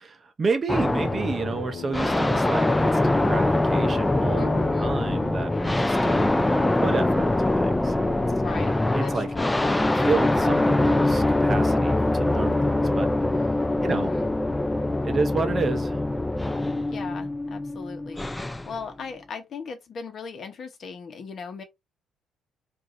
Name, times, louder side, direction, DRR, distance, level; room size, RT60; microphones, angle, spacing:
voice 1, 0.1-4.5 4.8-8.2 8.9-9.3 9.9-13.1 13.4-13.5 13.8-14.1 15.0-16.0, right 4 dB, 30° right, 0.6 m, -30 dB
sound 1, 0.7-18.7, left 2 dB, 10° left, 0.4 m, -23 dB
sound 2, 1.0-15.9, left 8 dB, 65° left, 0.8 m, -43 dB
voice 2, 4.3-4.9 8.3-9.8 13.9-14.4 16.9-21.6, left 5 dB, 45° left, 1.0 m, -38 dB
4.6 x 2.6 x 2.6 m
cardioid pair, 125°, 0 cm